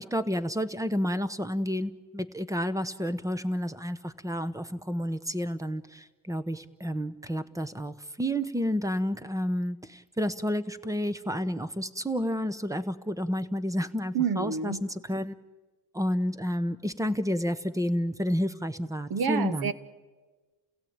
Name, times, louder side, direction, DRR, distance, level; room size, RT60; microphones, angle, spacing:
voice 1, 0.0-15.3 15.9-19.7, equal, 5° right, 13 dB, 0.9 m, -30 dB
voice 2, 14.1-14.8 19.1-19.7, right 6 dB, 45° right, 14 dB, 1.4 m, -28 dB
29.0 x 16.5 x 8.8 m, 1.3 s
cardioid pair, 115°, 48 cm